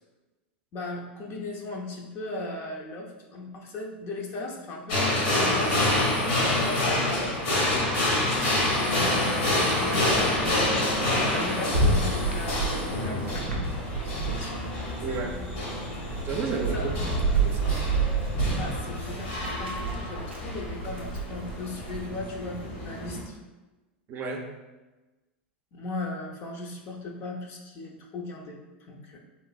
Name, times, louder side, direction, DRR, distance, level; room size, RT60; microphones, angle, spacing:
voice 1, 0.7-5.9 6.4-7.6 8.7-9.4 9.7-14.8 15.1-15.7 15.9-16.2 16.7-17.0 18.5-23.4 25.7-29.2, left 2 dB, 45° left, 0 dB, 0.5 m, -38 dB
sound 1, 4.9-23.2, left 1 dB, 70° left, 1.0 m, -28 dB
sound 2, 11.7-14.6 14.8-22.1, right 3 dB, 90° right, 0.5 m, -29 dB
sound 3, 13.2-20.4, left 1 dB, 90° left, 1.4 m, -43 dB
voice 2, 15.0-15.4 16.2-17.7 24.1-24.5, right 4 dB, 35° right, 2 dB, 0.4 m, -32 dB
3.0 x 2.5 x 2.3 m, 1.1 s
hypercardioid pair, 95°, 6 cm